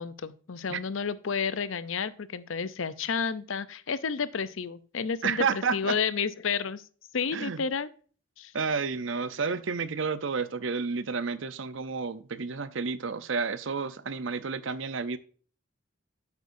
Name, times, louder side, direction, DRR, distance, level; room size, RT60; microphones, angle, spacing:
voice 1, 0.0-6.9 7.1-7.9 8.4-8.5, left 6 dB, 75° left, 0.6 m, -31 dB
voice 2, 5.2-6.0 7.3-7.6 8.5-15.2, right 5 dB, 70° right, 0.7 m, -31 dB
9.7 x 8.2 x 2.7 m
head